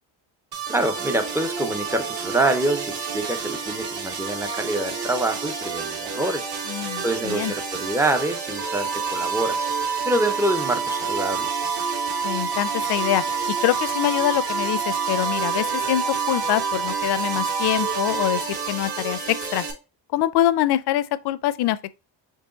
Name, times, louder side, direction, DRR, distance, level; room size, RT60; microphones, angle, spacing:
sound 1, 0.5-19.7, right 5 dB, 65° right, 1.9 m, -31 dB
voice 1, 0.7-6.5 7.0-9.7 10.1-11.5, right 1 dB, 5° right, 0.3 m, -26 dB
voice 2, 6.7-7.5 12.2-13.2 13.6-19.6 20.1-22.0, left 13 dB, 65° left, 0.5 m, -24 dB
Wind instrument woodwind instrument, 8.6-18.5, right 5 dB, 90° right, 1.0 m, -28 dB
4.6 x 2.9 x 3.8 m
cardioid pair, 150°, 44 cm